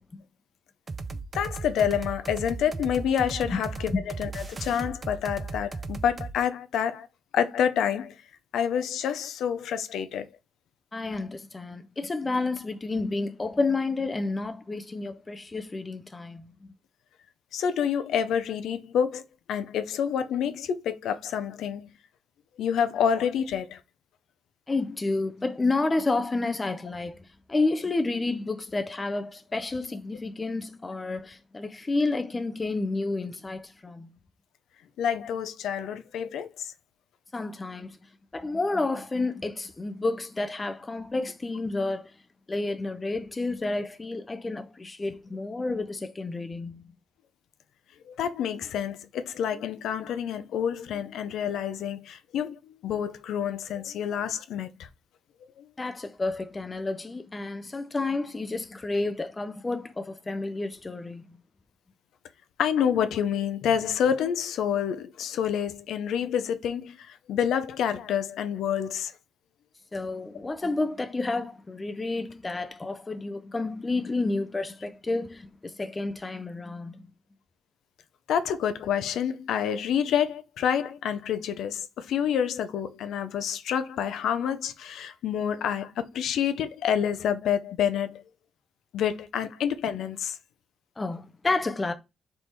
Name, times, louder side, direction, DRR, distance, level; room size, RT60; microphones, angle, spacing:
sound 1, 0.9-6.4, right 3 dB, 30° right, 0.4 m, -36 dB
voice 1, 1.3-3.9 4.2-7.1 7.3-8.1 8.5-10.3 17.5-19.2 19.5-21.9 22.6-23.8 35.0-36.7 48.1-54.7 55.6-55.7 62.6-69.1 78.3-88.2 88.9-90.4, left 8 dB, 75° left, 0.5 m, -28 dB
voice 2, 10.9-16.5 24.7-27.2 27.5-34.1 37.3-38.0 38.3-42.1 42.5-46.9 55.8-61.4 69.9-77.1 91.0-91.9, left 3 dB, 20° left, 0.5 m, -30 dB
4.1 x 3.4 x 3.0 m
cardioid pair, 90°, 0 cm